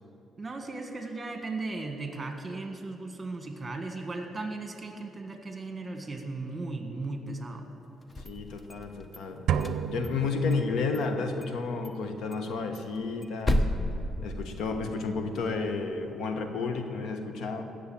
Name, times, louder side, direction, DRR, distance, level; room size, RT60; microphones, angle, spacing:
voice 1, 0.4-7.7, right 3 dB, 25° right, 4 dB, 1.7 m, -36 dB
sound 1, 8.0-9.2 9.5-10.7 10.9-11.0 11.4-11.6 11.8-11.9 12.3-14.9, left 1 dB, 25° left, 0.9 m, -32 dB
voice 2, 8.2-9.5 9.9-13.7 14.2-17.6, left 4 dB, 75° left, 6 dB, 1.2 m, -31 dB
sound 2, 9.5-11.2, right 8 dB, 75° right, 0.5 m, -31 dB
16.0 x 6.8 x 8.7 m, 2.9 s
cardioid pair, 90°, 0 cm